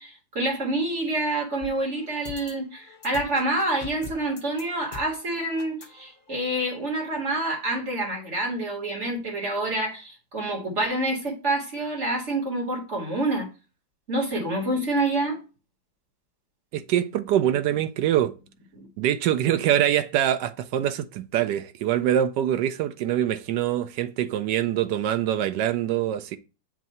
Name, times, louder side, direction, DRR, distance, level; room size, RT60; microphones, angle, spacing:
voice 1, 0.0-13.5 14.1-15.4 18.8-18.9, right 2 dB, 40° right, 1.8 m, -27 dB
sound 1, 1.6-6.6, left 4 dB, 40° left, 0.8 m, -44 dB
voice 2, 16.7-18.3 19.0-26.4, right 11 dB, 75° right, 1.1 m, -24 dB
7.5 x 2.7 x 5.3 m
omnidirectional pair, 2.1 m